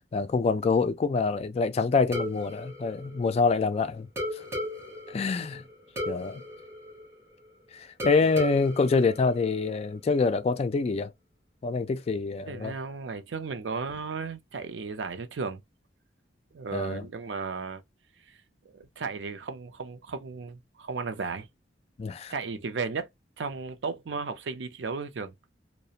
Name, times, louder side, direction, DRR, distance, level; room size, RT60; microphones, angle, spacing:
voice 1, 0.1-4.1 5.1-5.6 6.1-6.4 7.7-11.1 11.6-12.7 16.7-17.1 22.0-22.3, left 4 dB, 35° left, 0.3 m, -26 dB
sound 1, 2.1-3.7 4.2-7.5 8.0-10.0, left 1 dB, 15° right, 0.8 m, -36 dB
voice 2, 12.5-15.6 16.5-17.8 18.3-18.4 18.7-21.5 22.3-23.1 23.4-25.3, right 4 dB, 90° right, 0.5 m, -35 dB
2.4 x 2.1 x 2.7 m
head